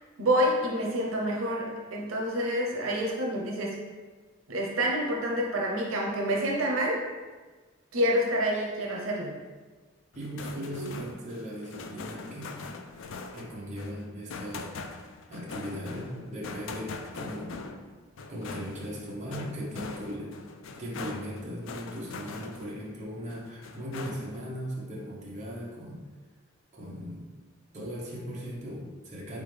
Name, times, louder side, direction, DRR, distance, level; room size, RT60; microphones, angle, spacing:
voice 1, 0.2-3.8 4.5-7.0 7.9-9.4 10.6-10.9, equal, 85° right, -1 dB, 0.7 m, -28 dB
sound 1, 10.1-22.9 23.3-24.5, left 4 dB, 70° left, 0.4 m, -42 dB
voice 2, 10.1-12.6 13.3-14.7 15.3-17.5 18.3-20.3 20.8-26.0 26.7-27.3 27.7-29.4, equal, 35° right, -5 dB, 1.0 m, -38 dB
4.2 x 3.6 x 3.3 m, 1.4 s
head